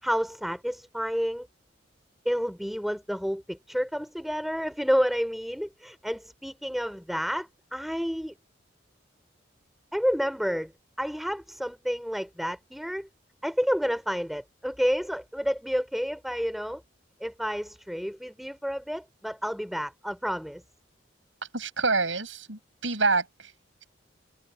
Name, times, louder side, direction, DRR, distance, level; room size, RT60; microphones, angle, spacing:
voice 1, 0.0-1.5 2.2-8.3 9.9-10.7 11.0-13.1 13.4-16.8 17.2-20.6, equal, ahead, 4.4 m, -30 dB
voice 2, 21.5-23.5, right 3 dB, 85° right, 7.4 m, -27 dB
head